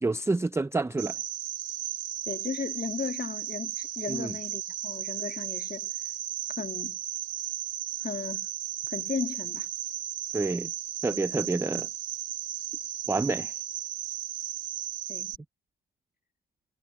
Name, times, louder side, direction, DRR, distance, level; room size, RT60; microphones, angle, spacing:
voice 1, 0.0-1.2 4.1-4.4 10.3-10.7 11.0-11.9 13.1-13.6, right 3 dB, 5° right, 0.5 m, -28 dB
Cricket, 1.0-15.4, right 12 dB, 45° right, 1.4 m, -35 dB
voice 2, 2.3-5.9 6.6-7.0 8.0-8.5 8.9-9.7 13.2-13.4 15.1-15.3, left 5 dB, 20° left, 2.0 m, -35 dB
supercardioid pair, 90°, 42 cm